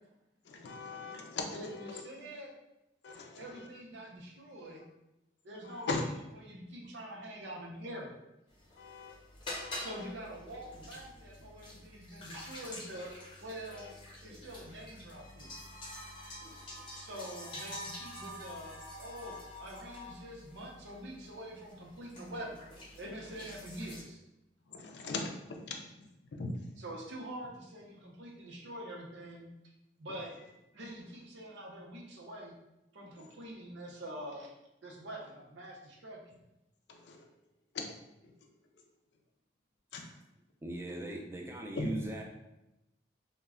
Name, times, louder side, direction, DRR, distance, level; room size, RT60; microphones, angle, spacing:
voice 1, 0.5-1.6 1.9-2.0 3.0-3.4 5.9-6.1 8.8-9.1 9.6-9.9 24.7-25.8 26.4-26.6 37.1-37.2 37.7-37.9 39.9-40.0 41.8-41.9, left 3 dB, 70° left, 3 dB, 0.4 m, -38 dB
voice 2, 1.5-2.5 3.3-4.8 5.4-8.2 9.8-13.1 13.4-13.9 14.2-15.5 16.9-18.7 19.0-22.6 23.0-24.2 26.8-29.5 30.0-30.3 30.7-32.5 32.9-34.5 34.8-36.2, right 1 dB, 85° right, -1 dB, 0.6 m, -45 dB
sound 1, 8.5-24.0, left 1 dB, 25° left, 0.6 m, -47 dB
voice 3, 40.6-42.2, right 1 dB, 15° right, -1 dB, 0.3 m, -39 dB
2.2 x 2.1 x 3.5 m, 0.91 s
head